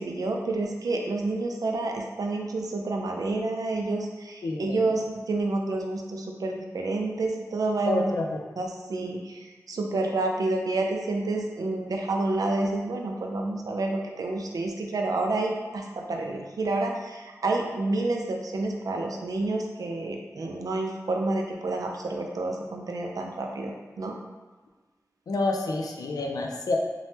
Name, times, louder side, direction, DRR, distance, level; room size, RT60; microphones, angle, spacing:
voice 1, 0.0-8.1 8.6-24.2, right 2 dB, 75° right, 2 dB, 0.4 m, -29 dB
voice 2, 4.4-4.8 7.9-8.4 25.3-26.8, left 2 dB, 90° left, 1 dB, 0.4 m, -28 dB
3.3 x 2.1 x 2.8 m, 1.3 s
cardioid pair, 45°, 6 cm